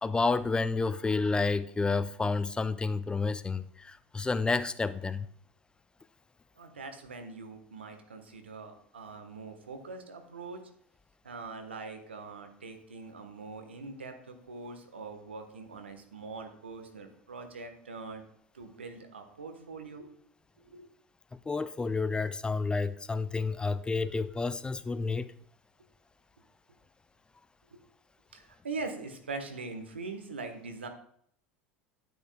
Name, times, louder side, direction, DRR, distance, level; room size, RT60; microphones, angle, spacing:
voice 1, 0.0-5.3 21.5-25.3, left 4 dB, 15° left, 0.4 m, -30 dB
voice 2, 6.6-10.7 11.2-18.2 18.5-20.1 20.6-20.9 27.7-27.8 28.3-30.9, right 3 dB, 85° right, 1.1 m, -42 dB
9.9 x 9.2 x 2.2 m
hypercardioid pair, 80°, 6 cm